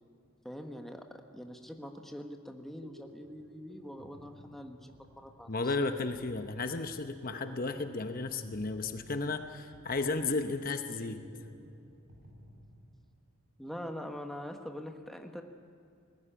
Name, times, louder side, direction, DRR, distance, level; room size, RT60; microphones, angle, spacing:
voice 1, 0.4-5.8 13.6-15.4, equal, ahead, 3 dB, 1.2 m, -44 dB
sound 1, 2.8-13.3, equal, 90° right, 3.6 m, -55 dB
voice 2, 5.5-11.2, left 3 dB, 40° left, 7 dB, 0.9 m, -33 dB
21.0 x 14.5 x 10.0 m, 2.4 s
head